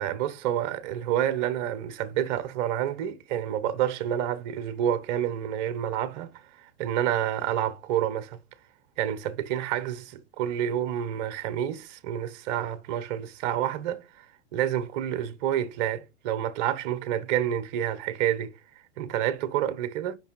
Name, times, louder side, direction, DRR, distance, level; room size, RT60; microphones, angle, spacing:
voice 1, 0.0-6.3 6.8-8.4 9.0-14.0 14.5-18.6 19.0-20.2, right 10 dB, 40° right, 0.9 m, -28 dB
5.4 x 5.4 x 5.2 m
hypercardioid pair, 125°, 35 cm